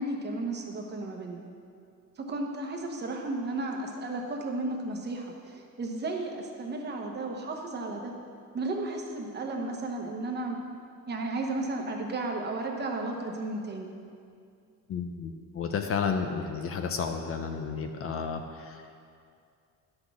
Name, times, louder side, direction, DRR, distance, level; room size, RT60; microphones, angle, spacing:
voice 1, 0.0-1.4 2.2-8.1 8.5-10.6 11.1-13.9, right 2 dB, 30° right, 1 dB, 1.1 m, -34 dB
voice 2, 14.9-19.0, left 6 dB, 40° left, 5 dB, 0.6 m, -32 dB
11.5 x 6.3 x 6.0 m, 2.4 s
cardioid pair, 170°, 34 cm